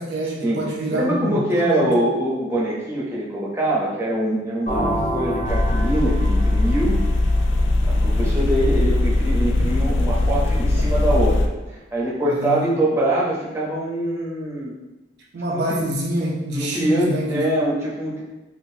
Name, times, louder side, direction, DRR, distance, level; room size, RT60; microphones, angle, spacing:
voice 1, 0.0-1.9 12.3-12.7 15.3-17.6, right 1 dB, 60° right, -1 dB, 0.5 m, -26 dB
voice 2, 1.0-7.0 7.9-14.7 15.5-15.8 16.5-18.2, right 1 dB, 15° right, -6 dB, 0.7 m, -23 dB
sound 1, 4.7-8.4, equal, 40° left, 0.9 m, -28 dB
sound 2, 4.7-10.8, equal, 25° left, 1.2 m, -42 dB
sound 3, 5.4-11.5, left 2 dB, 90° left, 0.3 m, -20 dB
3.7 x 2.5 x 2.7 m, 1.1 s
head